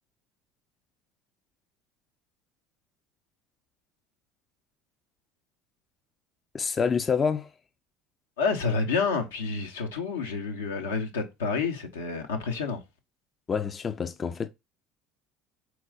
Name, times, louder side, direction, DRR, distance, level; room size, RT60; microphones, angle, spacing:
voice 1, 6.5-7.5 13.5-14.5, left 6 dB, 30° left, 0.4 m, -27 dB
voice 2, 8.4-12.8, left 4 dB, 85° left, 0.9 m, -29 dB
4.6 x 3.9 x 2.4 m
hypercardioid pair, 70°, 0 cm